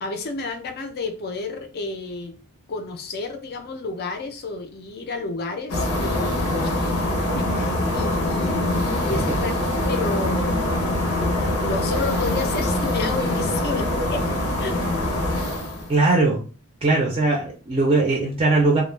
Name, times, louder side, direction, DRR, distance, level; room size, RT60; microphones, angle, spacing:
voice 1, 0.0-2.3 2.7-6.9 7.4-11.1 11.4-14.3 14.6-14.8, left 3 dB, 45° left, 6 dB, 0.4 m, -31 dB
sound 1, 5.7-15.9, left 1 dB, 85° left, 0.7 m, -24 dB
voice 2, 15.9-16.4 16.8-18.8, right 2 dB, 25° right, -1 dB, 0.4 m, -19 dB
2.2 x 2.0 x 3.1 m, 0.37 s
head